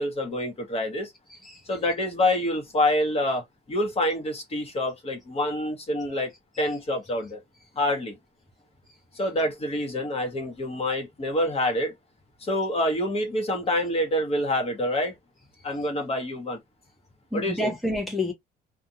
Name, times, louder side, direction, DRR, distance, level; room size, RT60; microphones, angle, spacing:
voice 1, 0.0-1.1 1.7-6.3 6.6-7.4 7.8-8.2 9.1-11.9 12.4-15.2 15.6-16.6 17.3-17.7, left 1 dB, 35° left, 1.2 m, -27 dB
voice 2, 1.3-1.6 15.8-15.9 17.3-18.3, left 1 dB, ahead, 0.6 m, -29 dB
2.5 x 2.3 x 2.8 m
cardioid pair, 110°, 17 cm